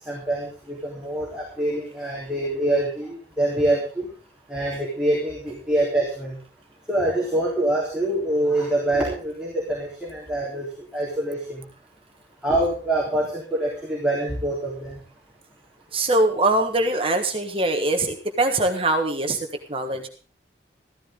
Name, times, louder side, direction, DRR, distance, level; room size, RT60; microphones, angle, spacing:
voice 1, 0.0-4.1 4.5-6.4 6.9-10.7 10.9-11.6 12.4-15.0, right 1 dB, 5° right, -6 dB, 3.9 m, -25 dB
voice 2, 15.9-19.4 19.7-20.1, right 2 dB, 30° right, 5 dB, 1.5 m, -22 dB
15.0 x 14.0 x 3.8 m, 0.38 s
head